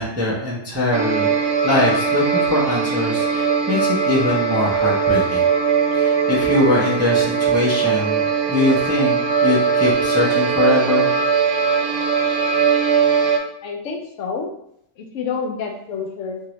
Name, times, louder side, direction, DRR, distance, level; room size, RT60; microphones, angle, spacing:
voice 1, 0.0-1.3 1.6-5.4 5.9-8.2 8.5-11.1, left 2 dB, 25° right, -6 dB, 0.3 m, -22 dB
sound 1, 0.9-13.4, right 6 dB, 80° right, 0.9 m, -20 dB
voice 2, 13.6-14.5 15.0-16.4, left 5 dB, 80° left, 2 dB, 0.9 m, -28 dB
2.9 x 2.6 x 3.0 m, 0.73 s
omnidirectional pair, 1.3 m